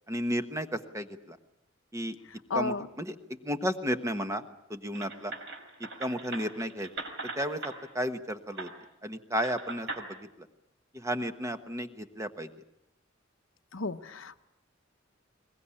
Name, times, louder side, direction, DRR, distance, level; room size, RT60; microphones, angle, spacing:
voice 1, 0.1-1.4 1.9-2.2 2.5-3.1 3.4-4.4 4.7-5.3 5.8-6.9 7.3-8.7 9.0-10.5 10.9-12.5, equal, 15° right, 8 dB, 1.1 m, -33 dB
voice 2, 2.5-2.9 13.7-14.4, left 3 dB, 70° left, 9 dB, 1.0 m, -33 dB
sound 1, 5.0-7.7 8.6-8.7 9.4-10.0, right 3 dB, 60° right, 4.7 m, -40 dB
22.5 x 20.0 x 9.9 m, 0.90 s
head